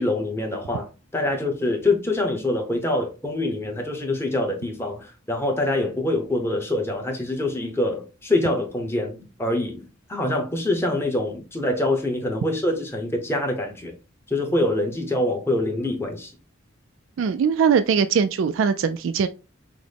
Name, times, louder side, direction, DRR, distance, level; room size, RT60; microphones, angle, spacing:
voice 1, 0.0-13.9 14.3-16.3, left 1 dB, 10° left, 0.9 m, -25 dB
voice 2, 17.2-19.3, right 6 dB, 75° right, 0.3 m, -21 dB
5.9 x 2.1 x 3.3 m
head